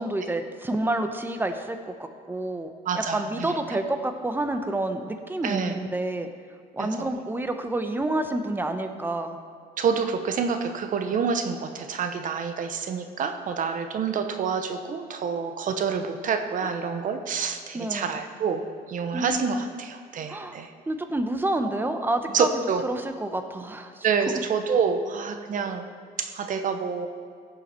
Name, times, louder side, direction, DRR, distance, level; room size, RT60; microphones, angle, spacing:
voice 1, 0.0-2.7 2.9-6.3 6.7-9.4 16.6-16.8 17.7-18.1 19.1-19.7 20.3-20.6 20.9-22.5 22.8-24.0, right 1 dB, 10° right, 7 dB, 0.9 m, -29 dB
voice 2, 2.8-3.8 5.4-5.8 6.8-7.1 9.8-20.7 22.3-22.8 24.0-27.1, right 6 dB, 50° right, 7 dB, 0.9 m, -28 dB
16.0 x 7.0 x 4.5 m, 2.2 s
cardioid pair, 110°, 17 cm